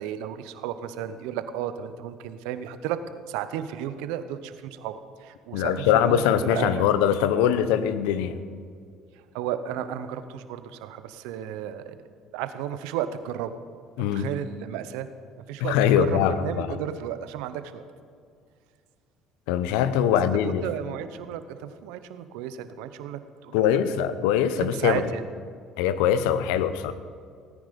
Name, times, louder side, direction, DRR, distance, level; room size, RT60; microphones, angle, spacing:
voice 1, 0.0-3.0 3.3-6.8 9.1-12.0 12.3-13.5 14.0-15.1 15.4-17.8 20.3-24.1 24.6-25.2, right 10 dB, 80° right, 11 dB, 0.8 m, -33 dB
voice 2, 5.5-8.4 14.0-14.3 15.6-16.7 19.5-20.7 23.5-25.0 25.8-26.9, left 9 dB, 80° left, 13 dB, 0.7 m, -22 dB
18.0 x 9.7 x 5.3 m, 2.2 s
hypercardioid pair, 70°, 0 cm